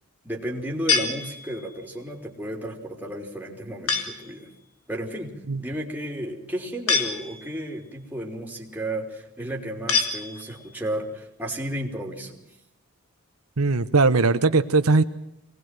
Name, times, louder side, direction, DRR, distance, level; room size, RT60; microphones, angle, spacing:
voice 1, 0.2-4.5 4.9-12.4, right 1 dB, 10° right, 3.6 m, -33 dB
sound 1, 0.9-1.8 3.9-4.4 6.9-7.7 9.9-10.8, left 5 dB, 85° left, 2.9 m, -27 dB
voice 2, 13.6-15.0, right 3 dB, 85° right, 1.0 m, -19 dB
24.0 x 19.5 x 7.7 m
head